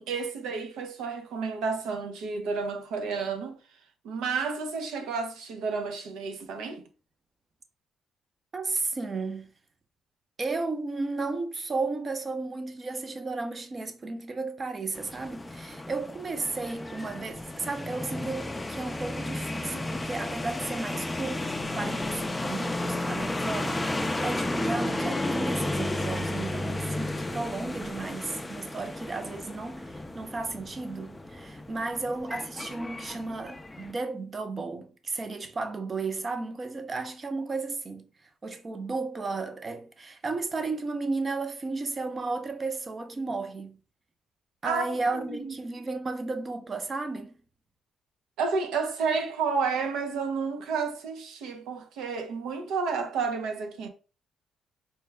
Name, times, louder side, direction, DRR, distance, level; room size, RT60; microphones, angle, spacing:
voice 1, 0.0-3.6 4.0-6.8 25.0-25.1 44.6-45.5 48.4-53.9, right 5 dB, 90° right, 0.7 m, -31 dB
voice 2, 8.5-9.5 10.4-43.8 44.6-47.4, right 3 dB, 35° right, 0.7 m, -34 dB
sound 1, 14.9-33.9, left 1 dB, 15° left, 0.4 m, -33 dB
4.5 x 2.2 x 3.3 m
cardioid pair, 90°, 0 cm